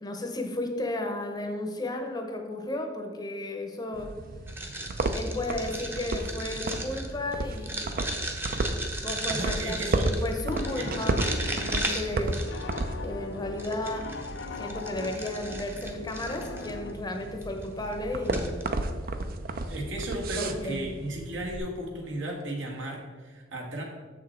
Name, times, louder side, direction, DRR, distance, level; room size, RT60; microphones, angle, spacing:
voice 1, 0.0-4.1 5.1-7.9 9.0-11.2 11.5-12.4 13.0-14.1 14.6-18.6 20.4-20.9, left 1 dB, 20° left, 4 dB, 0.8 m, -34 dB
sound 1, 3.9-21.6, right 2 dB, 50° right, 0.5 m, -33 dB
sound 2, 4.5-13.0 13.6-16.7 17.4-17.6 17.9-18.0 18.3-18.7, right 1 dB, 10° right, 0.7 m, -36 dB
voice 2, 9.3-10.1 10.7-10.9 19.7-23.8, right 1 dB, 80° right, -1 dB, 1.7 m, -35 dB
Piano, 10.5-16.9, left 5 dB, 65° left, 0.5 m, -40 dB
6.9 x 6.2 x 4.3 m, 1.4 s
head